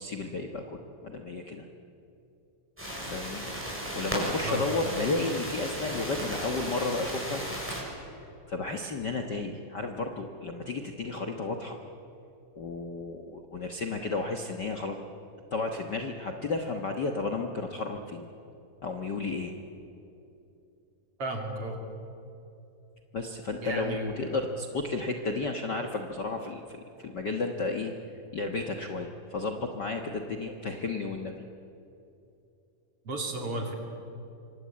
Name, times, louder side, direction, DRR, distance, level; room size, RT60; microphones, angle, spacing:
voice 1, 0.0-1.6 3.1-7.4 8.0-11.8 12.5-15.0 15.5-18.3 18.8-19.5 23.1-27.9 28.3-31.3, left 3 dB, 85° left, 4 dB, 0.9 m, -33 dB
sound 1, 2.8-7.8, equal, 5° right, 7.0 m, -35 dB
voice 2, 21.2-21.8 23.6-24.4 33.0-33.7, right 2 dB, 40° right, 3 dB, 4.0 m, -33 dB
27.0 x 25.0 x 8.7 m, 2.8 s
omnidirectional pair, 4.1 m